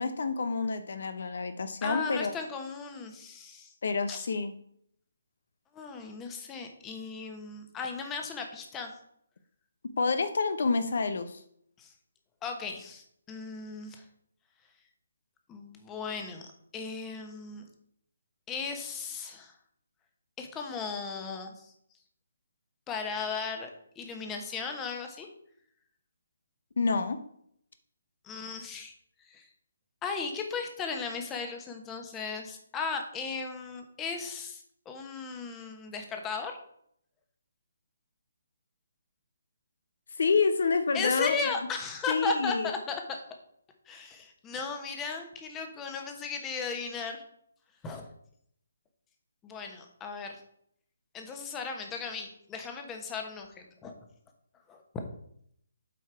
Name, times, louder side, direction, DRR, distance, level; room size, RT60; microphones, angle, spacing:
voice 1, 0.0-2.3 3.8-4.5 10.0-11.4 26.8-27.2 40.2-41.5 42.1-42.7, left 4 dB, 65° left, 10 dB, 0.7 m, -28 dB
voice 2, 1.8-3.7 4.1-4.3 5.7-8.9 11.8-11.9 12.4-14.0 15.5-16.5 16.7-17.7 18.5-19.5 20.4-21.7 22.9-23.7 24.0-25.3 28.2-28.9 29.3-29.5 30.0-36.6 40.9-43.2 43.9-47.2 47.8-48.1 49.4-50.3 51.1-53.9 54.7-54.8, left 5 dB, 15° left, 4 dB, 1.1 m, -36 dB
8.0 x 4.6 x 4.6 m, 0.68 s
figure-of-eight pair, 150°, 0 cm